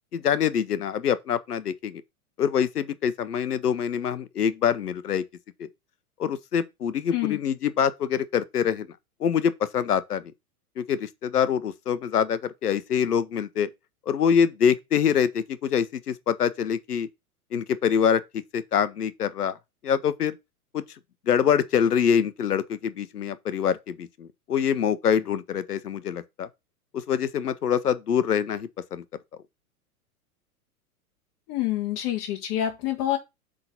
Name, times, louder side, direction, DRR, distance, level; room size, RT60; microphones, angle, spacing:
voice 1, 0.1-2.0 2.4-5.2 5.6-5.7 6.2-8.9 9.2-10.3 10.8-13.7 14.1-17.1 17.5-19.6 19.8-20.4 20.7-20.8 21.3-26.5 26.9-29.0, left 8 dB, 80° left, 0.9 m, -25 dB
voice 2, 31.5-33.2, left 13 dB, 40° left, 1.4 m, -27 dB
7.8 x 3.8 x 5.7 m
hypercardioid pair, 105°, 45 cm